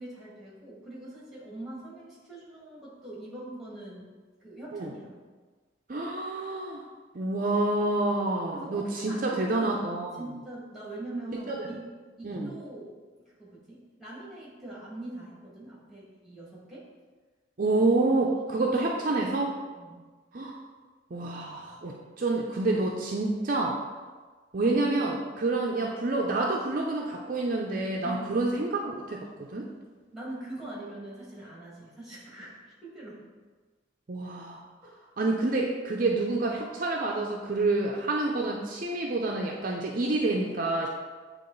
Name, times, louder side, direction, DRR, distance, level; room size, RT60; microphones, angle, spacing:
voice 1, 0.0-4.1 4.4-5.2 8.5-9.8 10.1-11.8 12.2-13.0 13.4-16.9 18.8-20.0 28.0-28.4 30.1-33.2 34.8-34.9, right 1 dB, ahead, -6 dB, 1.9 m, -43 dB
voice 2, 5.9-6.8 7.1-10.1 11.5-11.6 12.2-12.5 17.6-19.5 20.3-20.6 21.1-23.8 24.5-29.7 34.1-34.6 35.2-40.9, right 2 dB, 45° right, -1 dB, 0.5 m, -28 dB
8.6 x 3.0 x 3.9 m, 1.4 s
head